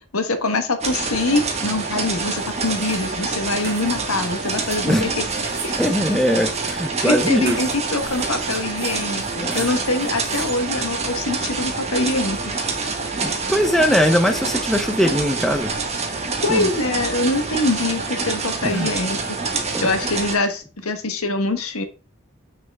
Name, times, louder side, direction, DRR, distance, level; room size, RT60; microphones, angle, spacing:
voice 1, 0.1-5.1 5.6-5.7 7.0-12.4 16.4-19.2 19.8-21.8, left 2 dB, 80° left, 1.4 m, -24 dB
sound 1, 0.8-20.4, right 4 dB, 30° right, 1.4 m, -26 dB
sound 2, 2.1-11.3, right 5 dB, 45° right, 2.6 m, -40 dB
voice 2, 5.8-7.6 9.4-9.8 13.2-15.7 16.5-16.7 18.6-18.9 19.7-19.8, equal, ahead, 0.7 m, -20 dB
7.9 x 6.4 x 3.5 m
head